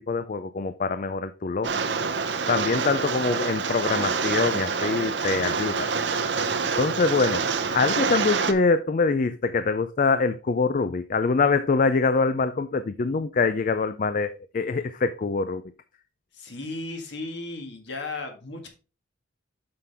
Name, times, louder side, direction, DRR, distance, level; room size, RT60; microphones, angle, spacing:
voice 1, 0.1-1.7 2.5-5.9 6.8-15.6, left 4 dB, 40° left, 0.4 m, -24 dB
Rain, 1.6-8.5, right 5 dB, 60° right, 0.7 m, -26 dB
voice 2, 16.3-18.7, left 2 dB, 60° left, 1.8 m, -35 dB
7.6 x 5.9 x 3.4 m
head